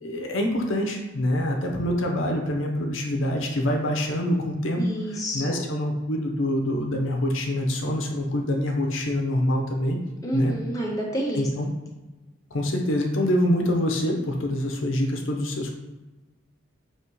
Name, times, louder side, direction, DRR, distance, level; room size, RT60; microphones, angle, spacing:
voice 1, 0.0-4.8 5.3-10.0 10.3-10.5 11.4-11.7 12.5-15.7, left 1 dB, 80° left, 1 dB, 0.6 m, -25 dB
voice 2, 4.8-5.6 10.2-11.5, right 1 dB, 15° left, -3 dB, 0.7 m, -29 dB
4.9 x 3.0 x 2.9 m, 1.1 s
head